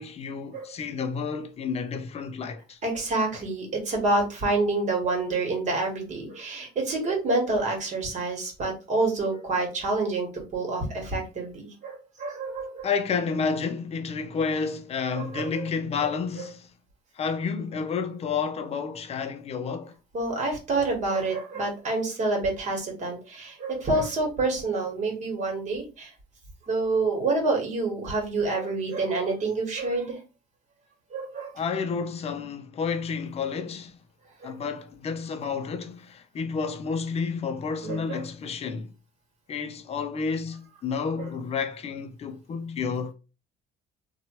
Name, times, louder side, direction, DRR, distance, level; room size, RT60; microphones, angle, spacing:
voice 1, 0.0-2.8 12.8-16.7 17.2-19.9 31.5-34.0 34.4-38.9 39.5-43.1, left 5 dB, 40° left, 0.5 m, -30 dB
voice 2, 2.8-12.9 15.1-15.6 20.1-26.1 26.7-30.2 31.1-31.5 34.4-34.5 37.8-38.2, right 3 dB, 45° right, 1.4 m, -28 dB
2.8 x 2.2 x 2.9 m
cardioid pair, 110°, 17 cm